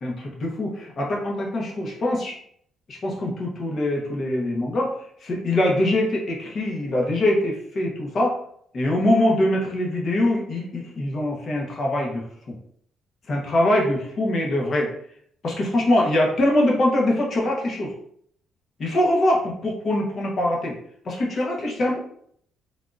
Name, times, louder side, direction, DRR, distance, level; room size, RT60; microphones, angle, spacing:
voice 1, 0.0-2.3 2.9-4.9 5.2-8.4 8.7-12.5 13.3-14.9 15.4-17.9 18.8-20.8 21.0-22.0, left 1 dB, 50° left, -1 dB, 0.9 m, -23 dB
3.5 x 2.5 x 2.4 m, 0.66 s
cardioid pair, 90°, 0 cm